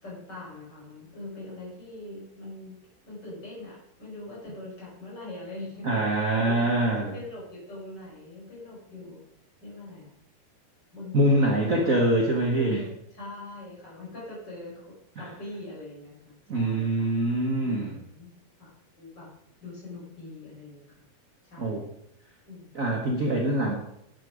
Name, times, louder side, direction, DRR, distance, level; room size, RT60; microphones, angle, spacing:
voice 1, 0.0-2.8 3.1-9.3 9.6-10.1 10.9-12.1 12.5-17.1 17.6-18.3 18.6-19.3 19.6-21.0 21.4-21.9 22.4-22.7, left 2 dB, 30° left, -5 dB, 5.5 m, -42 dB
voice 2, 5.8-7.1 11.1-12.8 15.2-15.3 16.5-18.0 21.6-21.8 22.7-23.7, right 1 dB, 50° right, 0 dB, 0.9 m, -24 dB
11.0 x 8.9 x 5.0 m, 0.75 s
omnidirectional pair, 3.8 m